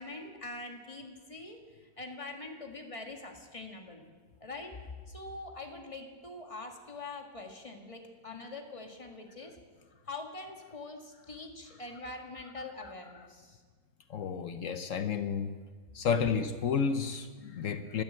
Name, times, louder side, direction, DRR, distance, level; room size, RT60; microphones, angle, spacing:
voice 1, 0.0-4.0 4.4-4.7 5.1-9.6 10.0-13.6, left 2 dB, 20° left, 2 dB, 1.8 m, -44 dB
voice 2, 14.1-15.5 15.9-18.0, left 6 dB, 60° left, 10 dB, 1.0 m, -31 dB
12.5 x 12.5 x 8.5 m, 1.5 s
omnidirectional pair, 1.7 m